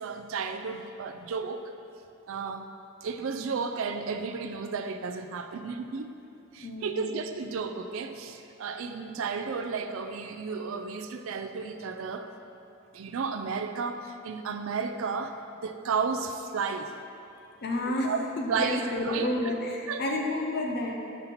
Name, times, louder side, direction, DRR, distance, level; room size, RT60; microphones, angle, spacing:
voice 1, 0.0-1.7 2.3-2.7 3.0-6.1 6.5-12.3 12.9-15.4 15.6-16.9 17.9-19.5 19.9-20.2, right 5 dB, 70° right, 8 dB, 0.4 m, -33 dB
voice 2, 6.6-7.0 17.6-18.1 18.4-21.0, left 1 dB, 50° left, 1 dB, 0.7 m, -30 dB
5.7 x 5.3 x 4.1 m, 2.8 s
head